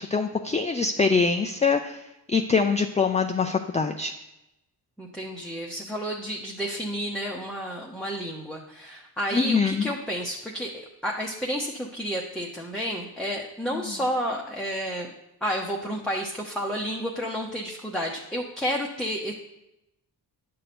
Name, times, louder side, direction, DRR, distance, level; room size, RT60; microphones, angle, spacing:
voice 1, 0.0-4.1 9.3-9.9 13.7-13.8, left 5 dB, 20° left, 6 dB, 0.4 m, -24 dB
voice 2, 5.0-15.1 15.4-19.3, equal, ahead, -2 dB, 0.8 m, -31 dB
10.0 x 6.7 x 4.3 m, 0.89 s
wide cardioid pair, 135°, 40 cm